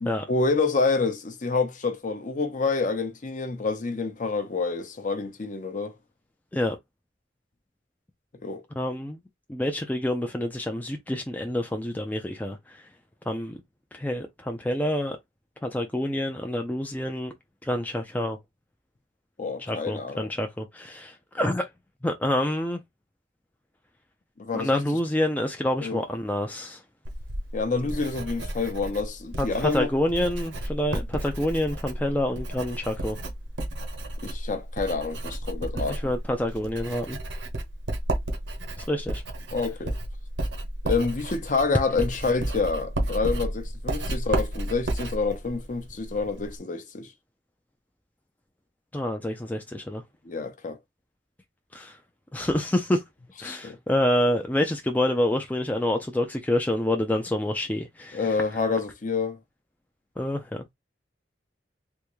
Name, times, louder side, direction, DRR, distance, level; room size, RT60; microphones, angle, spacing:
voice 1, 0.0-6.0 8.4-8.6 19.4-20.3 24.4-24.8 25.8-26.0 27.5-30.1 34.2-36.1 39.5-39.9 40.8-47.1 50.2-50.8 53.4-53.8 58.1-59.4, left 4 dB, 45° left, 0.7 m, -28 dB
voice 2, 8.8-9.2 9.5-12.8 13.3-13.6 13.9-15.2 15.6-17.3 17.6-18.4 19.7-21.7 22.0-22.8 24.5-26.8 29.4-33.2 35.7-37.2 38.8-39.2 48.9-50.0 51.7-52.0 52.3-53.0 53.4-58.3 60.2-60.6, left 1 dB, 10° left, 0.4 m, -27 dB
Writing, 27.0-46.6, right 1 dB, 80° right, 0.9 m, -32 dB
3.5 x 2.5 x 3.0 m
head